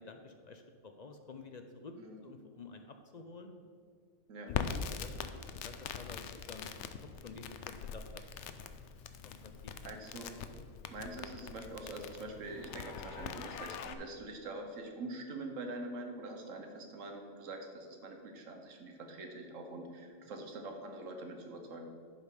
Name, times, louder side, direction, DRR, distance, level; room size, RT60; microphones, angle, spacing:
voice 1, 0.1-2.0 2.2-3.6 4.5-6.7 7.2-8.2 9.2-9.7, left 4 dB, 55° left, 6 dB, 0.5 m, -50 dB
Crackle, 4.5-13.9, left 7 dB, 70° left, 0.9 m, -42 dB
voice 2, 9.8-10.3 10.9-21.9, right 2 dB, 85° right, 4 dB, 1.4 m, -44 dB
11.0 x 5.4 x 4.8 m, 2.1 s
omnidirectional pair, 1.3 m